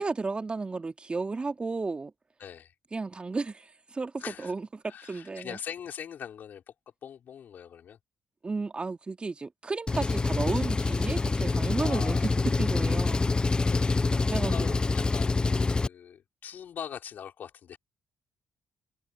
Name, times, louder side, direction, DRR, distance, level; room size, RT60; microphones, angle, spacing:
voice 1, 0.0-2.1 2.9-5.6 8.4-12.2 12.6-13.2 14.3-14.8, right 3 dB, 30° right, 2.2 m, -33 dB
voice 2, 2.4-2.7 4.2-4.5 4.9-6.6 7.0-8.0 11.8-12.4 13.7-14.0 14.3-17.8, left 8 dB, 60° left, 4.9 m, -42 dB
Engine, 9.9-15.9, left 3 dB, 25° left, 0.4 m, -26 dB
hypercardioid pair, 50°, 4 cm